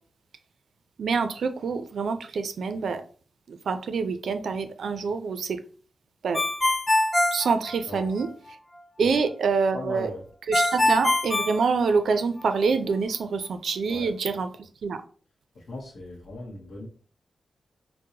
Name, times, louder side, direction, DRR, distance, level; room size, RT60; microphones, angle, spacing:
voice 1, 1.0-3.0 3.5-5.6 6.2-6.4 7.3-8.3 9.0-10.1 10.5-14.5 14.8-15.0, right 5 dB, 75° right, 9 dB, 0.3 m, -26 dB
Ringtone, 6.3-8.3 10.5-12.4, left 1 dB, 20° left, 0.4 m, -24 dB
voice 2, 9.7-10.2 13.9-14.1 15.5-16.9, left 2 dB, 80° left, -5 dB, 0.8 m, -38 dB
3.8 x 2.0 x 2.8 m, 0.42 s
wide cardioid pair, 130°, 0 cm